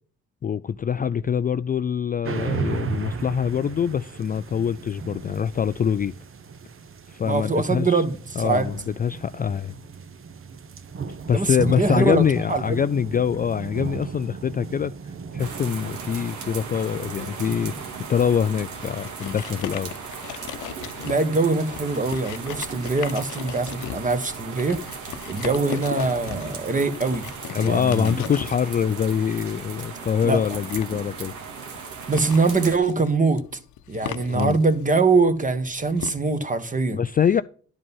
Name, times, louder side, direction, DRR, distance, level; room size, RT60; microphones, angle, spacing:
voice 1, 0.4-6.1 7.1-8.0 8.4-9.7 11.3-19.9 27.5-31.3 34.3-34.6 36.9-37.4, left 8 dB, 30° left, 0.3 m, -24 dB
sound 1, 2.2-20.1, right 5 dB, 45° right, 1.0 m, -35 dB
voice 2, 7.2-8.7 11.3-12.2 12.5-12.8 21.0-24.8 25.3-27.3 27.6-28.3 30.2-30.4 32.1-33.4 33.9-37.0, right 3 dB, 25° right, 1.4 m, -23 dB
sound 2, 15.4-32.8, right 5 dB, 80° right, 2.0 m, -37 dB
sound 3, 18.0-36.1, left 10 dB, 80° left, 0.9 m, -38 dB
11.0 x 5.1 x 5.5 m
cardioid pair, 90°, 30 cm